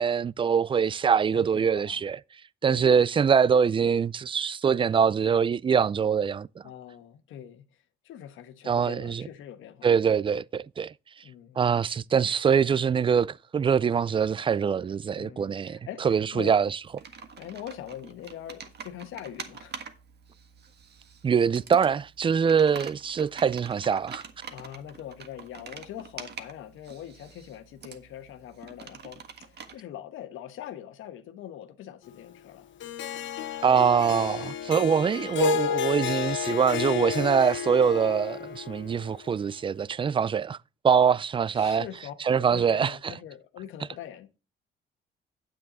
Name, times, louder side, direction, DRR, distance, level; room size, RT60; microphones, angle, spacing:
voice 1, 0.0-2.2 2.6-6.5 8.7-9.3 9.8-10.9 11.6-16.8 21.2-24.2 33.6-40.6 40.8-41.8 42.2-43.1, right 6 dB, 25° right, 0.3 m, -24 dB
voice 2, 1.3-2.0 2.6-3.0 6.6-7.7 8.0-9.9 11.2-11.7 15.2-16.6 17.1-19.8 24.5-32.7 41.5-44.3, left 11 dB, 85° left, 1.3 m, -43 dB
Computer keyboard, 16.8-29.8, right 6 dB, 55° right, 1.5 m, -45 dB
Harp, 32.8-39.2, left 9 dB, 70° left, 1.2 m, -31 dB
9.4 x 7.4 x 4.0 m
cardioid pair, 90°, 20 cm